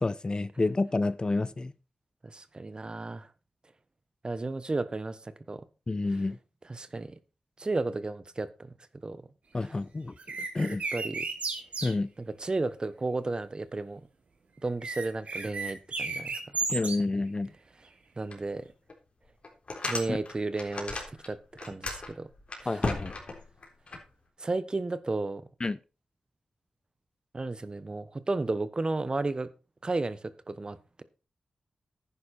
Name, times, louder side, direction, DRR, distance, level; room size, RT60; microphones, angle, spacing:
voice 1, 0.0-1.7 5.9-6.4 9.5-10.1 10.5-10.8 11.8-12.1 16.7-17.5 20.1-20.2 22.7-23.1 25.6-25.8, left 2 dB, 35° left, 0.7 m, -29 dB
voice 2, 2.2-3.3 4.2-5.6 6.7-7.1 7.6-8.7 9.0-9.2 10.9-11.2 12.2-14.0 14.6-16.4 18.2-18.6 19.9-22.3 22.6-22.7 24.4-25.4 27.3-29.5 29.8-31.0, right 3 dB, 40° right, 1.2 m, -33 dB
sound 1, 10.2-11.9 14.8-17.0, right 4 dB, 70° right, 2.8 m, -33 dB
sound 2, 18.3-18.4 18.9-19.0 19.4-21.3 21.5-24.0, left 3 dB, 55° left, 3.8 m, -35 dB
11.0 x 9.8 x 4.3 m
cardioid pair, 50°, 2 cm